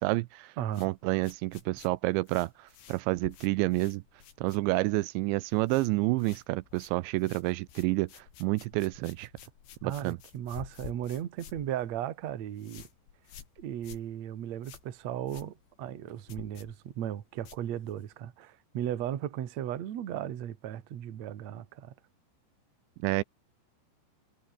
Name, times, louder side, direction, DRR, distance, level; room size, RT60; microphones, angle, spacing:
voice 1, 0.0-4.0 4.4-9.3 9.8-10.2 23.0-23.2, right 21 dB, 85° right, 2.9 m, -29 dB
voice 2, 0.6-0.9 9.8-12.9 13.6-21.9, right 11 dB, 55° right, 2.2 m, -36 dB
sound 1, 0.7-5.0 5.3-5.9 6.2-18.1, left 9 dB, 70° left, 5.1 m, -52 dB
omnidirectional pair, 5.2 m